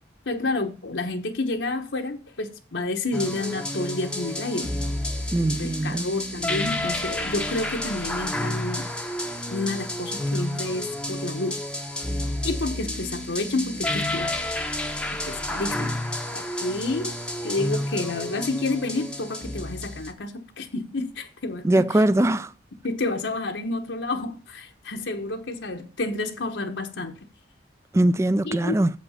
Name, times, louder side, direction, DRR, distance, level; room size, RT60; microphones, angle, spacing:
voice 1, 0.3-4.7 5.5-8.9 9.5-11.6 12.4-14.3 15.2-16.0 16.3-17.1 17.4-22.0 22.8-27.2 28.4-28.8, left 2 dB, 75° left, 1.1 m, -29 dB
sound 1, 3.1-20.1, left 1 dB, 5° left, 0.7 m, -30 dB
voice 2, 5.3-6.1 21.6-22.5 27.9-28.9, right 1 dB, 15° right, 0.3 m, -21 dB
7.6 x 5.2 x 5.7 m
head